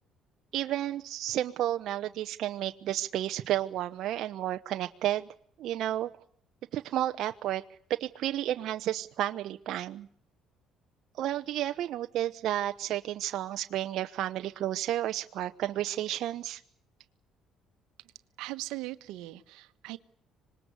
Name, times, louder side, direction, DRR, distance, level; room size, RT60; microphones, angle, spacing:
voice 1, 0.5-5.3 5.6-6.1 6.7-7.6 8.0-10.1 11.1-16.6, right 12 dB, 65° right, 7 dB, 1.0 m, -32 dB
voice 2, 18.4-20.0, right 18 dB, 85° right, 11 dB, 1.3 m, -39 dB
26.0 x 20.5 x 8.2 m, 0.66 s
cardioid pair, 110°, 0 cm